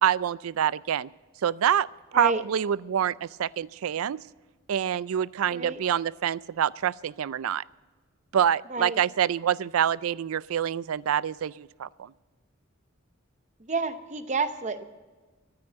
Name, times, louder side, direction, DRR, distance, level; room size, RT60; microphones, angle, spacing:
voice 1, 0.0-1.1 1.4-1.9 2.1-4.2 4.7-7.6 8.3-12.1, right 9 dB, 90° right, 21 dB, 0.4 m, -26 dB
voice 2, 5.5-5.8 8.7-9.0 13.6-14.9, right 3 dB, 35° right, 10 dB, 0.8 m, -29 dB
14.0 x 9.6 x 7.8 m, 1.3 s
head